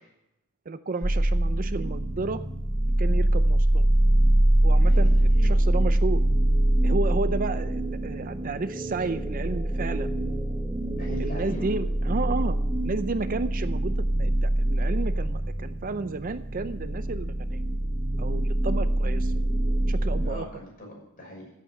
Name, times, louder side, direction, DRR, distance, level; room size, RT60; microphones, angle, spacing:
voice 1, 0.7-2.4 3.0-3.9 4.6-5.1 5.4-6.2 6.8-10.1 11.2-12.6 12.8-17.6 18.2-19.3 19.9-20.5, right 3 dB, 40° right, 12 dB, 0.5 m, -32 dB
sound 1, 1.0-20.3, right 1 dB, 15° right, 0.9 m, -24 dB
voice 2, 4.8-5.5 11.0-11.7 20.2-21.4, left 1 dB, 40° left, -1 dB, 6.4 m, -40 dB
14.5 x 8.4 x 6.4 m, 0.90 s
head